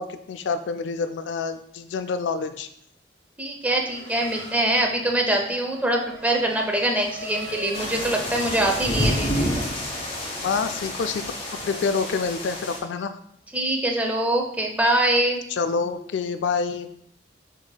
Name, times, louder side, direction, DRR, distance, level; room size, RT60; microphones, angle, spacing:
voice 1, 0.0-2.7 10.4-11.2 11.5-13.2 15.5-16.9, left 5 dB, 75° left, 10 dB, 0.3 m, -27 dB
voice 2, 3.4-9.5 13.5-15.4, right 1 dB, 10° right, 1 dB, 0.5 m, -23 dB
Race car auto racing / Accelerating revving vroom, 3.6-9.3, right 1 dB, 65° right, 1.2 m, -41 dB
sound 1, 7.7-12.8, left 1 dB, 35° left, 0.9 m, -29 dB
7.1 x 2.7 x 2.2 m, 0.69 s
head